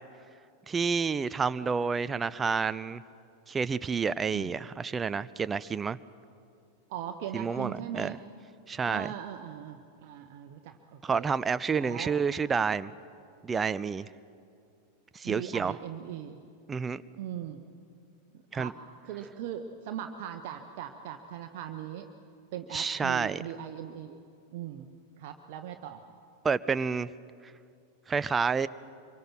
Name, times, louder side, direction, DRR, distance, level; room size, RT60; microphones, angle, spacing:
voice 1, 0.7-3.0 3.5-6.0 7.3-8.1 8.7-9.1 11.0-12.9 13.4-14.1 15.1-15.7 16.7-17.0 18.5-18.7 22.7-23.4 26.4-27.1 28.1-28.7, right 5 dB, 15° right, 0.5 m, -29 dB
voice 2, 6.9-8.2 8.8-11.3 11.7-12.2 15.2-16.4 17.2-17.6 18.3-18.8 19.0-22.1 22.5-24.2 24.5-24.9 25.2-26.0, right 10 dB, 50° right, 1.1 m, -39 dB
25.0 x 24.0 x 6.1 m
figure-of-eight pair, 90°, 0 cm